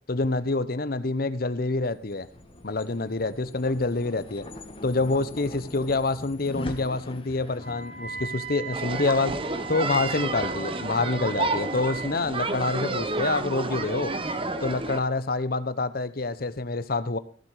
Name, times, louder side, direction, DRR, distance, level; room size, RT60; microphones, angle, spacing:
voice 1, 0.1-2.3 2.6-4.5 4.8-9.4 9.7-14.1 14.6-17.2, left 3 dB, 50° left, 0.9 m, -27 dB
sound 1, 1.7-12.1, left 1 dB, 30° left, 1.4 m, -43 dB
Wind instrument woodwind instrument, 7.6-12.2, right 8 dB, 65° right, 4.4 m, -38 dB
sound 2, 8.7-15.0, right 2 dB, 30° right, 0.9 m, -30 dB
14.5 x 7.5 x 4.8 m
head